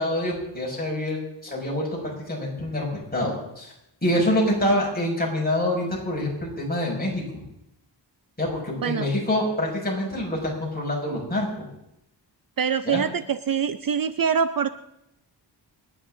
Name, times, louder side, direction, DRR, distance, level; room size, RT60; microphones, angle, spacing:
voice 1, 0.0-3.7 4.0-7.4 8.4-11.7 12.8-13.0, left 1 dB, 20° left, -3 dB, 5.6 m, -26 dB
voice 2, 12.6-14.7, right 7 dB, 50° right, 12 dB, 0.6 m, -24 dB
29.0 x 9.9 x 3.8 m, 0.82 s
wide cardioid pair, 120°, 43 cm